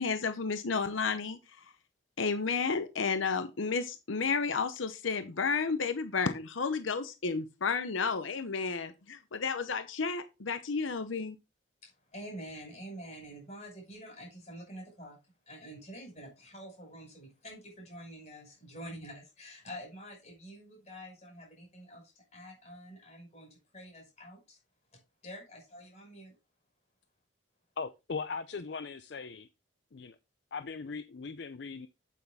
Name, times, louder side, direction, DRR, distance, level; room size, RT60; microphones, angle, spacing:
voice 1, 0.0-1.4 2.2-11.4, left 5 dB, 90° left, 0.8 m, -32 dB
voice 2, 11.8-15.2 15.5-24.6 25.2-26.3, equal, 35° left, 5.8 m, -47 dB
voice 3, 27.8-29.5 29.9-30.2 30.5-31.9, left 4 dB, 60° left, 0.5 m, -39 dB
8.5 x 8.1 x 3.5 m
head